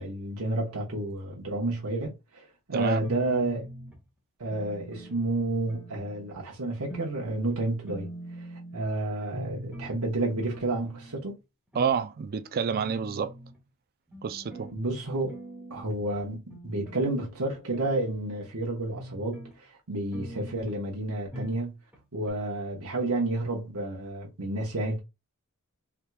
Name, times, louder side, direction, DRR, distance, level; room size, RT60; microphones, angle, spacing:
voice 1, 0.0-3.7 4.4-8.1 8.7-11.4 14.7-15.3 15.7-21.7 22.1-25.0, right 2 dB, 80° right, 1.1 m, -30 dB
voice 2, 2.7-3.0 11.7-13.3 14.2-14.7, right 6 dB, 45° right, 0.3 m, -29 dB
sound 1, 3.0-4.0 4.5-5.3 5.7-6.3 6.9-7.2 7.5-7.6 7.9-8.8 9.3-9.9 10.3-11.3 11.7-11.9 12.3-12.4 12.7-13.6 14.1-14.8 15.3-16.0 16.5-17.0 17.5-18.5 18.9-19.5 20.1-20.8 21.3-21.7 21.9-22.0 22.3-22.4, right 1 dB, 5° right, 0.9 m, -43 dB
3.5 x 2.9 x 2.3 m
head